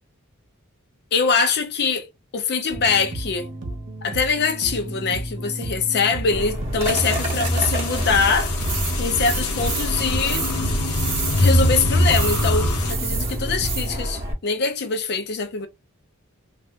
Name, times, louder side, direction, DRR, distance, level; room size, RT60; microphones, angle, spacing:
voice 1, 1.1-3.5 4.0-8.5 9.0-10.5 11.4-15.7, left 5 dB, 50° left, 0.5 m, -23 dB
sound 1, 2.7-14.0, right 1 dB, 55° right, 0.8 m, -33 dB
sound 2, 6.3-14.3, right 1 dB, 30° right, 1.0 m, -28 dB
sound 3, 6.8-12.9, left 1 dB, 85° left, 0.7 m, -23 dB
3.4 x 2.4 x 2.5 m
head